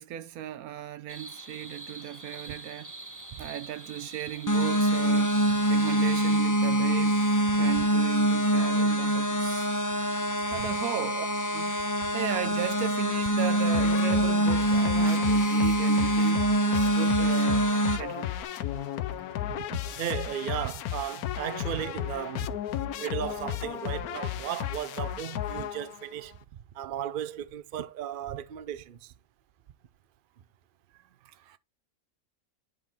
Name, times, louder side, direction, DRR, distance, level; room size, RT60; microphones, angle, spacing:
voice 1, 0.0-2.9 3.4-5.3 5.7-7.2 7.5-9.7 10.5-11.3 11.5-11.7 12.1-16.5 16.9-17.7 18.0-18.3 31.5-31.6, right 11 dB, 80° right, 1.2 m, -36 dB
sound 1, 1.1-6.4, right 2 dB, 15° right, 1.2 m, -44 dB
sound 2, 4.5-18.0, right 1 dB, 20° left, 0.5 m, -24 dB
sound 3, 13.7-26.1, left 11 dB, 85° left, 1.2 m, -34 dB
voice 2, 19.5-22.5 23.0-26.3 26.7-29.1, right 10 dB, 55° right, 0.6 m, -35 dB
10.0 x 3.8 x 4.3 m
omnidirectional pair, 1.5 m